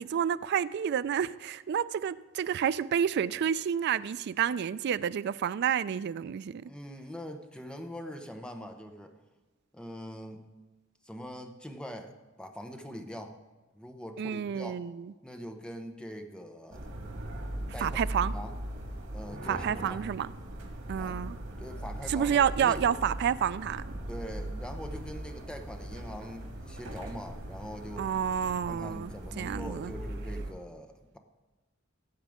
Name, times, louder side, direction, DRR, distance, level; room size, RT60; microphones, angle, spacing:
voice 1, 0.0-6.7 14.2-15.1 17.8-18.3 19.5-20.3 20.9-21.4 22.1-23.8 28.0-29.9, right 8 dB, 55° right, 0.3 m, -29 dB
voice 2, 6.6-9.1 9.7-10.5 11.0-13.4 13.7-14.8 15.2-16.9 17.7-18.5 19.1-20.1 21.0-21.2 21.6-23.0 24.1-28.1 28.7-31.2, equal, 5° left, 0.8 m, -43 dB
sound 1, 16.7-30.5, right 1 dB, 90° right, 1.9 m, -39 dB
17.0 x 7.4 x 3.6 m
head